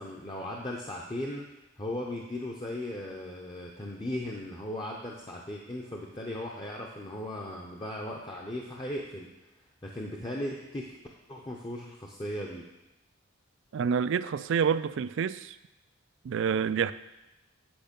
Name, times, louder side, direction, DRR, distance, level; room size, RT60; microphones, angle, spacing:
voice 1, 0.0-1.5 1.8-9.3 9.8-10.9 11.3-12.6, left 1 dB, 20° left, -1 dB, 0.7 m, -37 dB
voice 2, 13.7-15.6 16.2-16.9, right 7 dB, 65° right, 15 dB, 0.3 m, -28 dB
8.8 x 5.4 x 5.2 m, 0.95 s
head